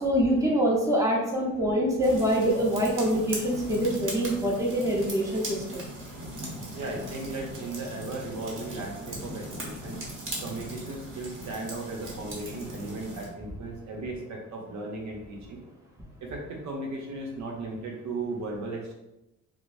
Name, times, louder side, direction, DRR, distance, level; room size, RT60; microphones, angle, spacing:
voice 1, 0.0-5.8, equal, 10° right, -3 dB, 0.9 m, -25 dB
sound 1, 2.0-13.3, right 1 dB, 40° right, 1.2 m, -39 dB
voice 2, 6.7-10.0 10.4-15.6 16.2-18.9, right 2 dB, 65° right, 0 dB, 0.7 m, -36 dB
4.5 x 2.0 x 2.6 m, 0.92 s
cardioid pair, 90°, 30 cm